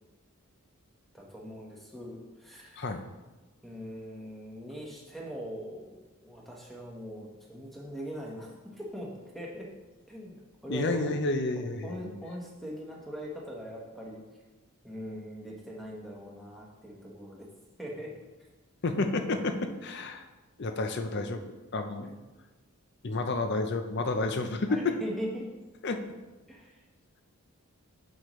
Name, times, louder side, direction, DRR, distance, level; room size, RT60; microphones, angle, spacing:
voice 1, 1.1-3.0 3.6-9.1 9.3-9.7 10.1-11.1 11.8-14.2 14.8-17.5 17.8-18.1 22.0-22.1 24.7-25.5 26.5-26.8, equal, ahead, -3 dB, 1.1 m, -41 dB
voice 2, 10.7-12.2 18.8-20.2 20.6-22.1 23.0-24.9 25.8-26.0, left 3 dB, 50° left, 7 dB, 0.6 m, -30 dB
8.0 x 6.7 x 3.1 m, 1.2 s
head